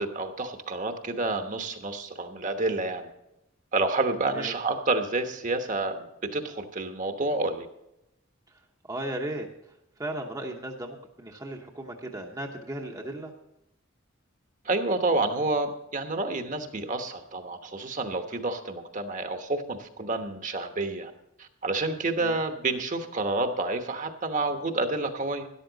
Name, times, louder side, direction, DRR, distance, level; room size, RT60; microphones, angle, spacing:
voice 1, 0.0-3.1 3.7-7.7 14.6-21.1 21.4-25.5, right 2 dB, 40° right, 6 dB, 1.1 m, -29 dB
voice 2, 8.9-9.5 10.0-13.3 22.2-22.4, right 1 dB, 20° right, 1 dB, 0.9 m, -36 dB
13.0 x 11.0 x 4.0 m, 0.85 s
head